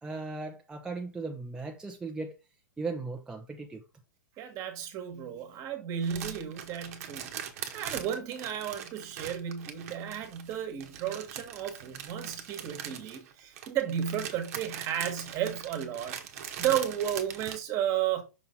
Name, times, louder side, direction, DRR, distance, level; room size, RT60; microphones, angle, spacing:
voice 1, 0.0-2.3 2.8-3.8, right 3 dB, 10° right, 0.7 m, -37 dB
voice 2, 4.4-7.3 7.7-18.2, right 9 dB, 35° right, 1.5 m, -33 dB
sound 1, 6.0-17.6, right 9 dB, 50° right, 1.1 m, -41 dB
6.0 x 4.1 x 3.8 m
hypercardioid pair, 115°, 10 cm